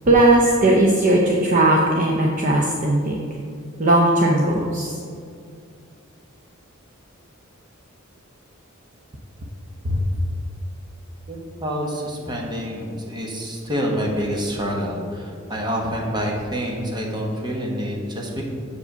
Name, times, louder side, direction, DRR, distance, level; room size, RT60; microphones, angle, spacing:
voice 1, 0.1-3.2 3.8-5.0 9.8-10.0, right 1 dB, 40° right, -2 dB, 0.7 m, -18 dB
voice 2, 11.3-18.4, equal, 20° right, -1 dB, 1.2 m, -27 dB
7.0 x 5.0 x 6.6 m, 2.4 s
head